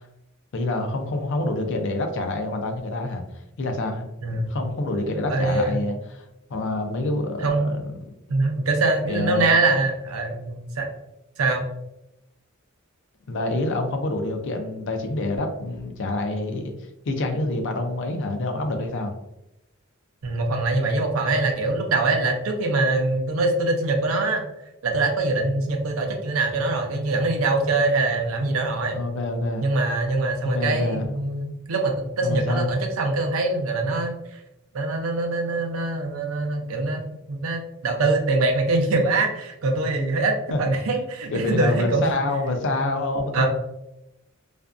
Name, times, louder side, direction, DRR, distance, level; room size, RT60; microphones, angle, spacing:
voice 1, 0.5-3.2 3.6-8.1 9.1-9.5 13.3-16.7 17.1-19.1 28.9-29.6 30.4-31.1 32.2-32.7 40.5-40.6 41.3-43.5, left 2 dB, 60° left, 5 dB, 0.4 m, -27 dB
voice 2, 5.3-5.8 7.4-7.7 8.3-10.9 11.4-11.7 20.2-24.4 24.8-29.0 29.6-34.4 34.7-37.0 37.3-42.1 43.3-43.5, right 2 dB, 75° right, 3 dB, 0.5 m, -23 dB
2.5 x 2.2 x 2.4 m, 0.88 s
head